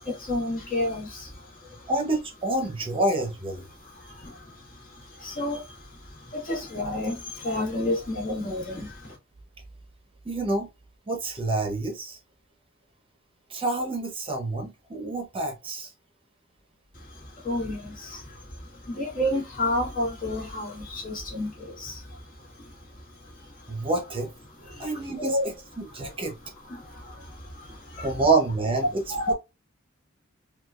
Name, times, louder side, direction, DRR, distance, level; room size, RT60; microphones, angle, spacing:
voice 1, 0.0-1.9 3.7-9.2 16.9-23.9 24.6-25.4 26.2-26.3 26.6-28.1 29.1-29.3, left 1 dB, 40° left, 1.7 m, -32 dB
voice 2, 1.9-3.7 10.2-10.7 11.1-12.2 13.5-15.9 23.7-24.3 24.8-26.4 28.0-29.3, right 2 dB, 25° right, 0.7 m, -27 dB
4.3 x 2.3 x 2.4 m
head